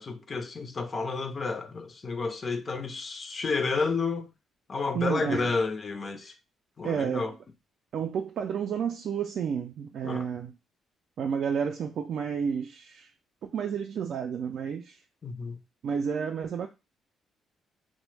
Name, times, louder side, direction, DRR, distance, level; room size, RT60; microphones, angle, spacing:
voice 1, 0.0-4.3 4.7-6.3 6.8-7.3 10.0-10.3 15.2-15.6, left 4 dB, 40° left, 0.4 m, -31 dB
voice 2, 4.9-5.5 6.8-7.3 7.9-10.6 11.2-13.1 13.4-15.0 15.8-16.7, right 7 dB, 65° right, 0.3 m, -31 dB
2.9 x 2.1 x 3.2 m
cardioid pair, 90°, 0 cm